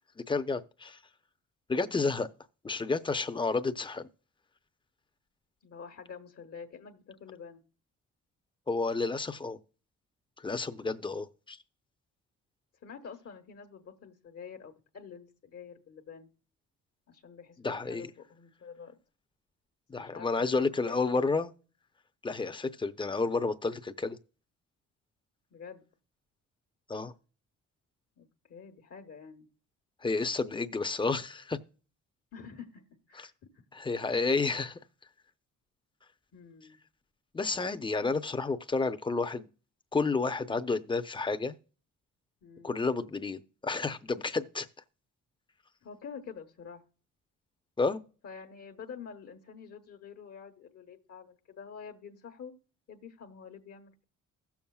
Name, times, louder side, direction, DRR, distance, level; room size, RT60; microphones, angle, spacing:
voice 1, 0.3-1.0 1.7-2.3 2.6-4.1 8.7-9.6 10.4-11.6 17.6-18.1 19.9-21.5 22.2-24.2 26.9-27.1 30.0-31.6 33.7-34.8 37.3-39.5 39.9-41.6 42.6-44.7 47.8-48.0, left 3 dB, 15° left, 0.7 m, -30 dB
voice 2, 1.8-2.1 5.6-7.6 12.8-16.3 17.1-19.0 20.0-21.0 25.5-25.8 28.2-29.5 32.3-33.5 36.3-36.8 42.4-42.7 45.8-46.8 48.2-52.5 52.9-54.0, left 6 dB, 55° left, 1.2 m, -47 dB
16.0 x 7.2 x 2.3 m
cardioid pair, 90°, 30 cm